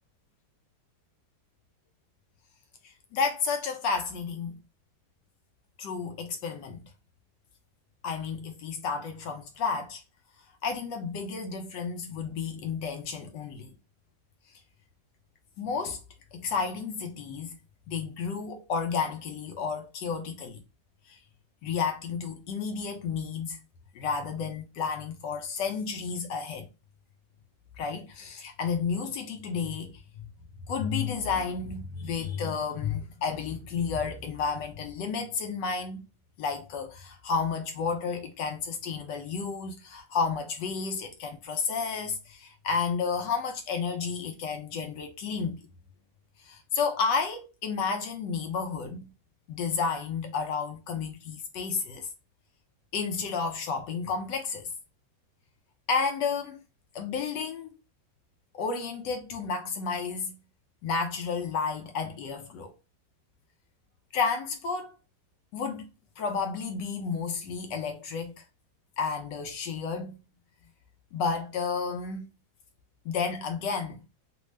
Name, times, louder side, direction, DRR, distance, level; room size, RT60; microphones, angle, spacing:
voice 1, 2.8-4.6 5.8-6.8 8.0-10.0 10.6-13.7 15.6-16.0 16.3-17.6 17.9-20.6 21.1-21.2 21.6-23.6 23.9-26.7 27.8-30.3 30.7-36.0 36.4-45.6 46.4-49.0 49.5-52.1 52.9-54.7 55.9-56.6 56.9-57.7 58.5-60.4 60.8-62.7 64.1-64.9 65.5-65.9 66.2-68.4 69.0-70.2 71.1-72.3 73.0-74.0, left 5 dB, 75° left, 1.1 m, -31 dB
3.4 x 2.1 x 3.1 m
omnidirectional pair, 2.2 m